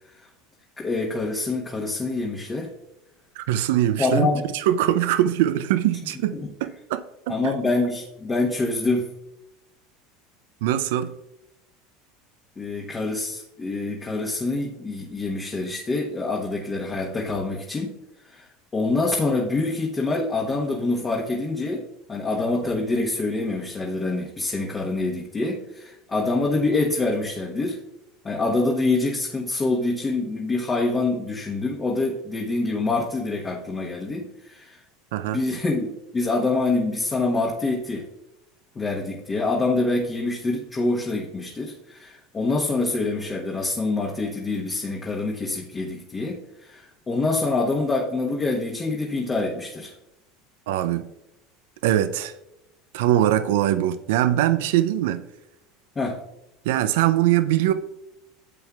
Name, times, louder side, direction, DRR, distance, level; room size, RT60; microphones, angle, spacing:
voice 1, 0.8-2.7 4.0-4.5 6.3-6.5 7.3-9.1 12.6-17.9 18.2-21.8 22.1-27.8 28.2-34.8 35.2-38.1 38.7-49.9 55.9-56.2, left 3 dB, 25° left, 1.3 m, -26 dB
voice 2, 3.4-4.3 4.5-7.5 10.6-11.1 35.1-35.4 50.7-51.1 51.8-52.3 52.9-55.2 56.6-57.7, right 12 dB, 70° right, 0.5 m, -22 dB
12.0 x 7.9 x 2.4 m
hypercardioid pair, 80°, 0 cm